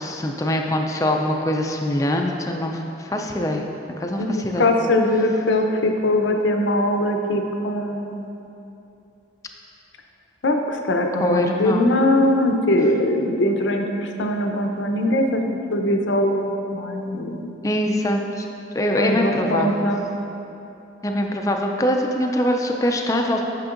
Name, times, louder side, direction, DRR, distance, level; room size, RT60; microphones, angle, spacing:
voice 1, 0.0-3.7 4.0-4.7 11.2-11.9 17.6-18.5 18.7-19.9 21.0-23.4, left 1 dB, 15° left, 2 dB, 0.3 m, -23 dB
voice 2, 4.2-8.4 10.4-15.4 15.7-17.6 19.0-20.1, left 1 dB, 75° left, 4 dB, 0.5 m, -21 dB
8.7 x 5.9 x 2.5 m, 2.9 s
head